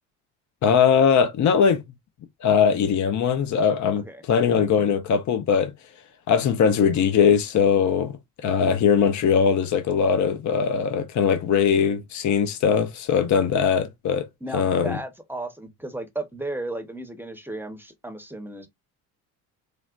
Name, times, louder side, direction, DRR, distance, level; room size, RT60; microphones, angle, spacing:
voice 1, 0.6-1.8 2.4-5.7 6.3-8.1 8.4-14.3 14.5-15.0, left 7 dB, 45° left, 0.8 m, -20 dB
voice 2, 14.4-18.7, right 2 dB, 5° right, 0.9 m, -34 dB
4.9 x 2.1 x 2.4 m
hypercardioid pair, 65°, 41 cm